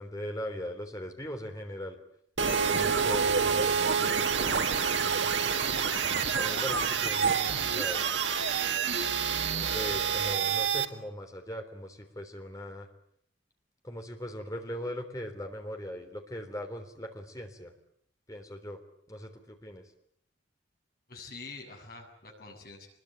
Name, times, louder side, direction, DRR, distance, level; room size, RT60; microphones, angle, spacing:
voice 1, 0.0-2.0 2.7-4.2 4.9-5.6 6.3-8.1 9.7-12.9 13.8-17.7 18.3-18.8 19.1-19.8, equal, 20° left, 5 dB, 3.5 m, -39 dB
sound 1, 2.4-10.9, right 6 dB, 75° right, 1.9 m, -27 dB
voice 2, 21.1-22.9, left 3 dB, 50° left, 1 dB, 7.4 m, -46 dB
25.0 x 21.5 x 9.0 m, 0.68 s
head